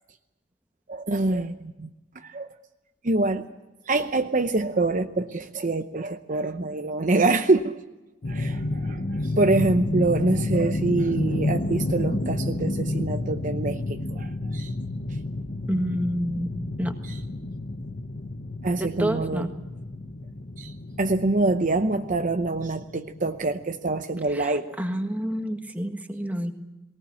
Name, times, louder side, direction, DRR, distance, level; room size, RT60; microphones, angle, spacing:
voice 1, 0.9-2.5 3.0-3.5 3.9-7.8 8.3-14.7 18.6-19.5 20.6-24.6, right 2 dB, 40° right, 7 dB, 0.8 m, -25 dB
sound 1, 8.2-23.7, left 2 dB, 45° left, 1.1 m, -30 dB
voice 2, 15.7-16.5 16.8-16.9 18.8-19.5 24.3-26.5, equal, 10° right, 5 dB, 1.6 m, -28 dB
20.0 x 19.0 x 8.5 m, 1.0 s
head